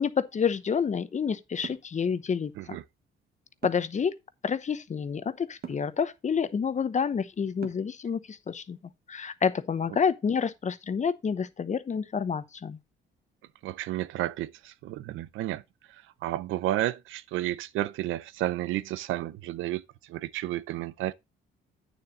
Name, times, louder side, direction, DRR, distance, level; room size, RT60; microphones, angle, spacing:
voice 1, 0.0-2.8 3.6-4.2 4.4-8.8 9.1-12.8, left 6 dB, 35° left, 0.9 m, -29 dB
sound 1, 1.6-1.9 3.6-4.0 5.6-5.9 7.6-8.0, right 7 dB, 50° right, 1.5 m, -41 dB
voice 2, 13.6-15.6 15.9-21.1, right 14 dB, 85° right, 0.6 m, -32 dB
9.1 x 6.9 x 3.9 m
cardioid pair, 90°, 20 cm